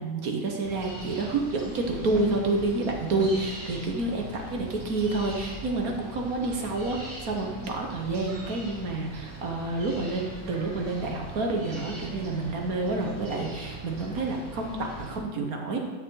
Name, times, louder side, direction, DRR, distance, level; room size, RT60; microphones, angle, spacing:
voice 1, 0.0-15.8, right 2 dB, 60° right, 2 dB, 1.5 m, -29 dB
sound 1, 0.6-15.2, right 2 dB, 85° right, 3.2 m, -41 dB
11.5 x 6.6 x 3.9 m, 1.3 s
omnidirectional pair, 1.9 m